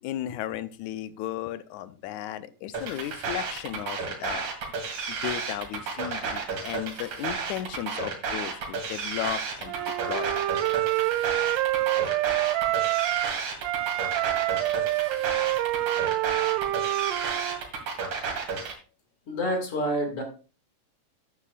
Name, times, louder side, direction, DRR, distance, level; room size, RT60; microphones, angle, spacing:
voice 1, 0.0-4.5 5.1-10.4, left 12 dB, 80° left, 13 dB, 2.0 m, -35 dB
sound 1, 2.7-18.7, right 5 dB, 70° right, 3.5 m, -32 dB
Wind instrument woodwind instrument, 9.7-13.3 13.6-17.6, right 17 dB, 85° right, 2.1 m, -27 dB
voice 2, 19.3-20.2, equal, 50° left, 4 dB, 2.9 m, -28 dB
13.0 x 10.0 x 2.4 m, 0.35 s
omnidirectional pair, 3.5 m